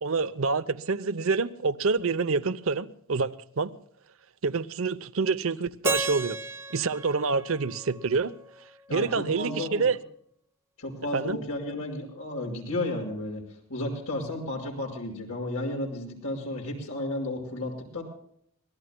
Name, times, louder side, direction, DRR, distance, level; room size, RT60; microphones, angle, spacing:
voice 1, 0.0-3.7 4.4-6.4 6.7-8.3 8.9-10.0 11.1-11.4, right 4 dB, 65° right, 0.7 m, -27 dB
Keyboard (musical), 5.8-8.8, right 2 dB, 10° right, 0.6 m, -34 dB
voice 2, 8.9-9.8 10.8-13.4 13.7-18.0, left 1 dB, 80° left, 5.3 m, -33 dB
25.0 x 18.5 x 2.2 m
head